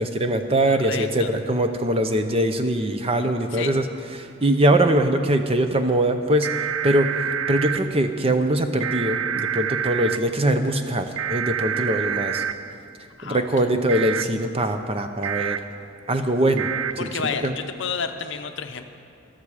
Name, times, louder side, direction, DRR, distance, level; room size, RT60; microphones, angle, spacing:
voice 1, 0.0-3.8 4.2-6.5 6.8-7.1 7.5-12.4 13.2-15.6 16.1-16.7 17.0-17.1 17.4-17.5, right 1 dB, 25° right, 7 dB, 0.6 m, -22 dB
voice 2, 0.7-1.3 3.5-3.7 13.2-13.5 17.0-18.8, left 6 dB, 60° left, 7 dB, 0.7 m, -30 dB
sound 1, 6.4-7.8 8.8-10.2 11.2-12.5 13.9-14.2 15.2-15.6 16.6-16.9, right 8 dB, 70° right, 0.5 m, -27 dB
14.0 x 12.5 x 4.9 m, 2.5 s
head